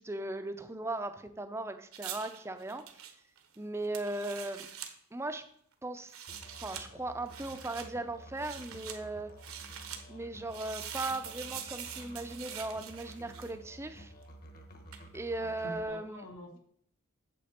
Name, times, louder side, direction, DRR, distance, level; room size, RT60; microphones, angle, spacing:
voice 1, 0.0-2.8 3.6-4.7 5.1-5.4 5.8-6.2 6.6-9.3 10.1-14.1 15.1-16.3, right 2 dB, 10° right, 9 dB, 0.5 m, -38 dB
sound 1, 1.9-4.9 6.0-6.8 7.3-7.9 8.4-9.0 9.4-10.0 10.5-13.7 14.9-15.1, right 9 dB, 75° right, 1.1 m, -44 dB
Musical instrument, 6.3-15.9, right 1 dB, 40° left, 1.1 m, -52 dB
voice 2, 15.4-16.6, left 1 dB, 80° left, 1 dB, 1.6 m, -46 dB
8.4 x 7.3 x 4.3 m, 0.65 s
head